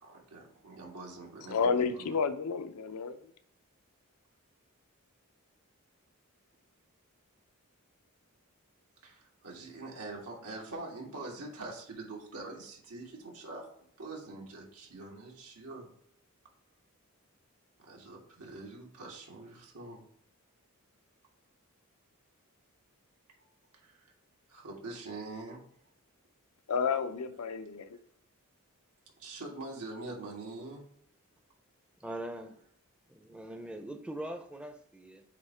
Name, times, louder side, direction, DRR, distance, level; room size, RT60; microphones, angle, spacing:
voice 1, 0.0-2.1 9.0-15.9 17.8-20.0 23.7-24.1 24.5-25.6 29.2-30.8, right 2 dB, 90° right, 1.9 m, -44 dB
voice 2, 1.5-3.2 26.7-27.9, left 5 dB, 90° left, 0.6 m, -30 dB
voice 3, 32.0-32.5 33.1-35.2, right 1 dB, 5° right, 0.5 m, -41 dB
8.1 x 2.8 x 4.3 m
head